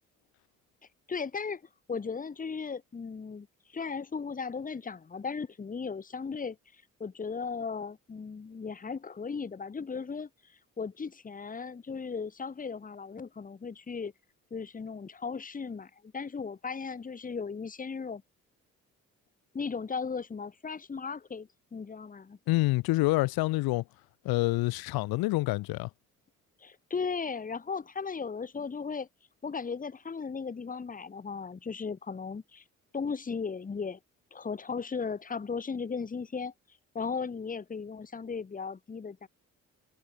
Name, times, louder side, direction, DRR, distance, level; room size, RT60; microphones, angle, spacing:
voice 1, 1.1-1.6 1.9-3.5 3.7-6.6 7.0-10.3 10.8-14.1 14.5-18.2 19.5-22.4 26.6-29.1 29.4-32.6 32.9-34.0 34.3-36.5 36.9-39.3, left 5 dB, 20° left, 1.0 m, -36 dB
voice 2, 22.5-23.8 24.2-25.9, left 20 dB, 65° left, 1.0 m, -27 dB
hypercardioid pair, 45°, 39 cm